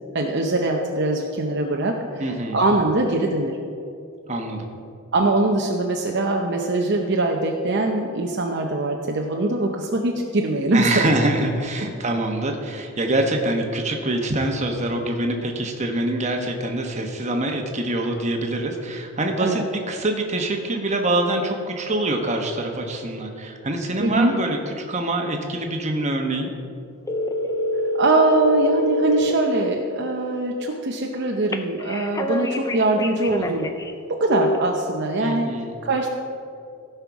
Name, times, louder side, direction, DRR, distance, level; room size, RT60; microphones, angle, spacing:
voice 1, 0.1-3.6 5.1-11.1 11.8-11.9 19.4-19.6 24.0-24.3 27.9-33.7 34.1-35.5 35.8-36.1, right 2 dB, 50° right, 1 dB, 0.7 m, -22 dB
voice 2, 2.2-2.6 4.3-4.7 10.7-19.6 19.9-26.5 35.2-35.7, right 1 dB, 30° right, 3 dB, 1.1 m, -25 dB
sound 1, 27.1-29.3 31.5-33.9 34.3-34.6, left 1 dB, 15° left, 0.4 m, -25 dB
16.0 x 5.7 x 4.7 m, 2.5 s
head